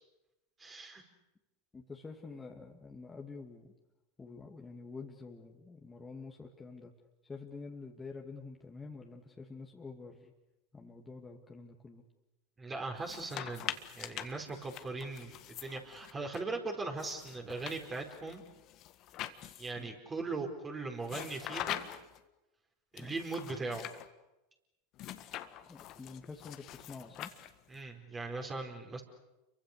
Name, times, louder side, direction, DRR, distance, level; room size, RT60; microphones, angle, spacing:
voice 1, 0.6-1.0 12.6-18.4 19.6-21.9 22.9-23.9 27.7-29.0, right 3 dB, 25° right, 2 dB, 4.6 m, -39 dB
voice 2, 1.7-3.7 4.2-6.9 7.2-10.3 10.7-12.0 19.8-19.9 23.0-23.2 25.7-27.4, left 4 dB, 15° left, 0 dB, 2.5 m, -48 dB
sound 1, 13.0-16.4 17.0-19.9 21.0-22.2 23.0-24.1 25.0-27.8, left 13 dB, 45° left, 1.6 m, -44 dB
29.5 x 23.5 x 6.8 m, 0.98 s
hypercardioid pair, 90°, 0 cm